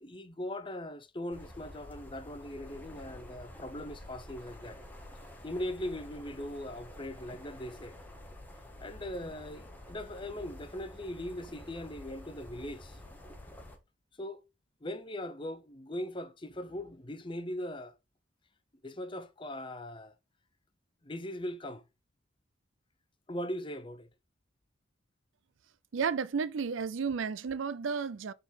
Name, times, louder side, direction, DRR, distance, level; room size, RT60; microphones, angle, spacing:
voice 1, 0.0-4.8 5.4-7.9 8.8-13.0 14.2-14.4 14.8-17.9 18.8-20.1 21.0-21.8 23.3-24.1, left 1 dB, 25° left, 0.7 m, -40 dB
sound 1, 1.3-13.8, left 1 dB, 10° left, 1.1 m, -49 dB
voice 2, 25.9-28.3, right 5 dB, 70° right, 0.5 m, -32 dB
7.1 x 3.9 x 3.9 m
head